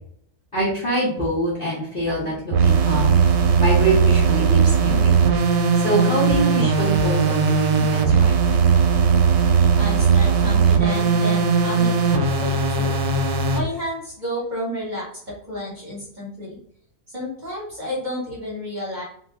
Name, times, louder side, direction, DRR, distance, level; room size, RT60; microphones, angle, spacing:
voice 1, 0.5-3.2 3.6-5.1 5.7-8.3, right 1 dB, 40° left, -7 dB, 0.8 m, -24 dB
sound 1, 2.5-13.6, right 5 dB, 80° right, 1.2 m, -18 dB
voice 2, 9.8-12.9 13.5-15.2 15.5-16.6 17.1-19.0, equal, 30° right, -6 dB, 1.1 m, -31 dB
2.9 x 2.9 x 3.4 m, 0.66 s
omnidirectional pair, 1.9 m